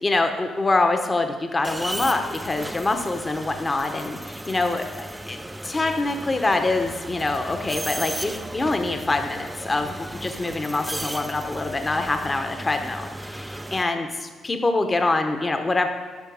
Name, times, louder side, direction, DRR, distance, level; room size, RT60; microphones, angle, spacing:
voice 1, 0.0-5.4 5.6-15.9, left 2 dB, 25° left, 6 dB, 0.9 m, -25 dB
sound 1, 1.6-13.8, right 1 dB, 10° right, 0.4 m, -35 dB
11.0 x 5.9 x 7.0 m, 1.4 s
cardioid pair, 90°, 0 cm